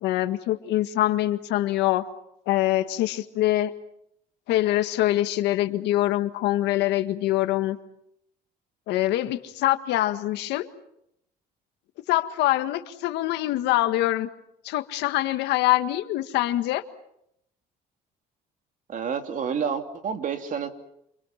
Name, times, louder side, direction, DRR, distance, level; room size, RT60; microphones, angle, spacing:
voice 1, 0.0-2.1 2.5-3.7 4.5-7.8 8.9-10.7 12.1-14.3 14.6-16.8, left 15 dB, 85° left, 9 dB, 1.8 m, -24 dB
voice 2, 18.9-20.7, right 7 dB, 50° right, 6 dB, 3.0 m, -29 dB
29.0 x 28.0 x 5.9 m, 0.77 s
cardioid pair, 110°, 17 cm